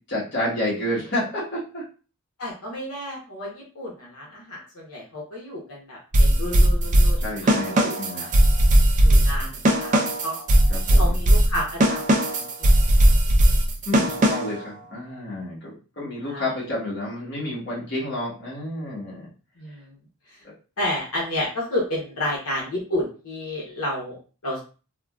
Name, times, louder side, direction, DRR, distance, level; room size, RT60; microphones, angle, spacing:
voice 1, 0.1-1.8 7.2-8.3 10.7-11.2 13.8-19.3, left 1 dB, 50° left, -5 dB, 1.3 m, -30 dB
voice 2, 2.4-7.3 7.7-8.3 9.0-10.4 11.0-12.7 16.2-16.5 19.6-19.9 20.8-24.2 24.4-24.6, left 1 dB, 80° left, -3 dB, 0.9 m, -31 dB
sound 1, 6.1-14.6, right 1 dB, 35° right, 0.4 m, -18 dB
3.6 x 2.3 x 2.3 m, 0.35 s
head